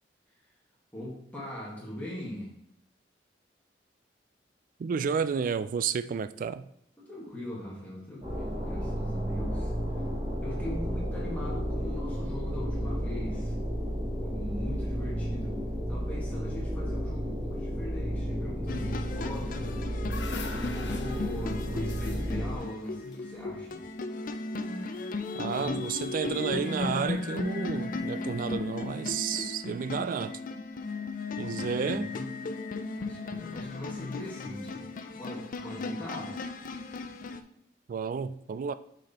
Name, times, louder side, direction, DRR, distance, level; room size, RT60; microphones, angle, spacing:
voice 1, 0.9-2.5 7.1-10.1 10.4-13.5 14.2-15.6 15.9-19.9 20.5-23.8 25.5-25.8 31.4-32.3 33.0-34.8 35.1-36.4, left 1 dB, 10° left, 1.5 m, -41 dB
voice 2, 4.8-6.7 25.3-30.4 31.4-32.1 37.9-38.7, right 6 dB, 50° right, 0.3 m, -31 dB
sound 1, 8.2-22.5, equal, 25° right, 1.7 m, -32 dB
sound 2, 18.7-37.4, left 3 dB, 50° left, 0.4 m, -36 dB
sound 3, 20.0-23.9, left 4 dB, 80° left, 0.9 m, -44 dB
6.3 x 4.2 x 4.1 m
head